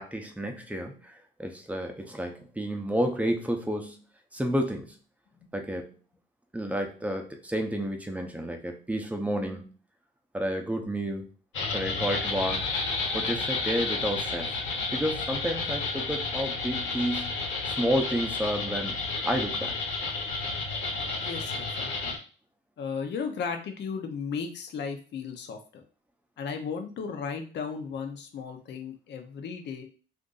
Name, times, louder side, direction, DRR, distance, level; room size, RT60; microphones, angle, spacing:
voice 1, 0.0-4.0 4.3-5.0 5.5-5.9 6.5-9.7 10.3-11.3 11.7-12.7 13.1-14.6 14.9-17.3 17.6-19.0 19.2-19.8, equal, 5° right, 4 dB, 0.7 m, -30 dB
sound 1, 11.5-22.2, left 3 dB, 85° left, 1.3 m, -31 dB
voice 2, 21.2-22.2 22.8-25.8 26.4-29.8, left 6 dB, 60° left, 5 dB, 0.7 m, -35 dB
2.6 x 2.5 x 3.9 m, 0.37 s
cardioid pair, 90°, 20 cm